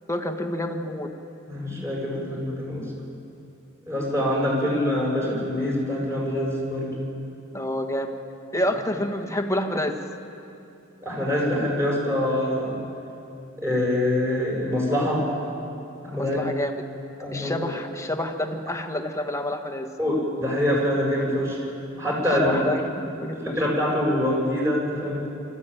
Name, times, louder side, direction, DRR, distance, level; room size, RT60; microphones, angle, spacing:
voice 1, 0.1-1.1 7.5-8.1 8.5-10.0 16.1-16.7 17.3-19.9 22.4-23.4, left 1 dB, 15° left, 4 dB, 1.6 m, -28 dB
voice 2, 1.5-2.8 3.9-7.0 11.0-12.8 13.6-15.2 16.0-16.4 17.2-17.7 20.0-21.6 22.0-22.6 23.4-25.3, left 1 dB, 15° right, -4 dB, 7.3 m, -25 dB
25.5 x 14.0 x 9.1 m, 2.7 s
head